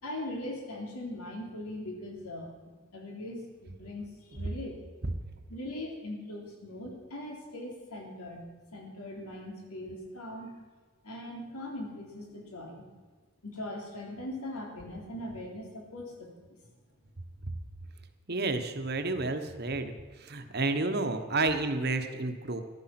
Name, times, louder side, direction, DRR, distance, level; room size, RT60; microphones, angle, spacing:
voice 1, 0.0-2.5 2.9-4.8 5.5-10.5 11.0-12.8 13.4-16.6, left 1 dB, 90° left, 1 dB, 3.5 m, -40 dB
voice 2, 18.3-19.9 20.2-22.6, right 3 dB, 45° right, 7 dB, 1.2 m, -30 dB
15.0 x 12.0 x 6.0 m, 1.4 s
head